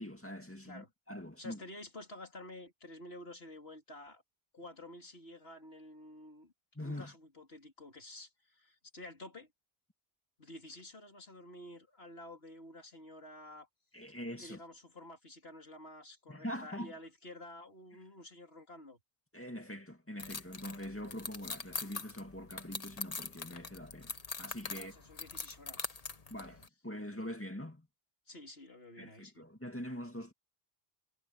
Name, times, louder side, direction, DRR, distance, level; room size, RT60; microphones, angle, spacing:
voice 1, 0.0-1.6 6.8-7.1 13.9-14.6 16.3-16.9 19.3-25.0 26.3-27.9 29.0-30.3, left 1 dB, 10° left, 2.3 m, -43 dB
voice 2, 1.4-4.2 4.5-6.5 6.8-9.5 10.4-13.7 14.1-19.0 24.7-25.9 28.3-29.4, left 1 dB, 75° left, 3.6 m, -51 dB
sound 1, 20.2-26.7, left 4 dB, 40° left, 1.2 m, -43 dB
omnidirectional pair, 1.0 m